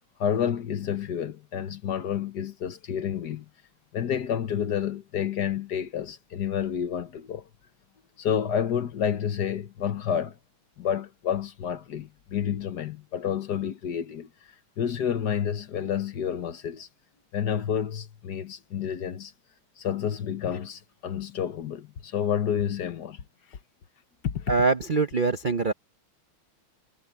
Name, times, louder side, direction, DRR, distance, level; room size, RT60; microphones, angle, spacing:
voice 1, 0.2-3.4 3.9-7.5 8.2-10.4 10.8-14.3 14.8-16.9 17.3-19.3 19.8-23.2 24.2-24.5, left 8 dB, 60° left, 1.5 m, -29 dB
voice 2, 24.5-25.7, right 4 dB, 55° right, 0.5 m, -23 dB
omnidirectional pair, 2.3 m